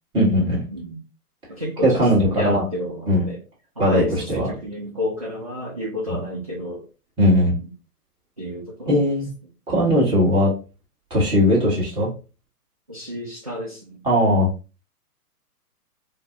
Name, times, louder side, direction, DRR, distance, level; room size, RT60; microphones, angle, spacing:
voice 1, 0.1-0.6 1.8-2.6 3.1-3.3 3.8-4.5 6.1-6.2 7.2-7.6 8.9-9.3 9.7-10.5 11.1-12.1 14.0-14.5, equal, 10° right, -6 dB, 1.1 m, -18 dB
voice 2, 1.5-2.0 2.3-3.4 3.8-6.8 8.4-9.0 11.3-11.4 12.9-14.0, left 1 dB, 25° right, -5 dB, 0.3 m, -31 dB
4.2 x 2.0 x 2.5 m, 0.33 s
figure-of-eight pair, 125°, 46 cm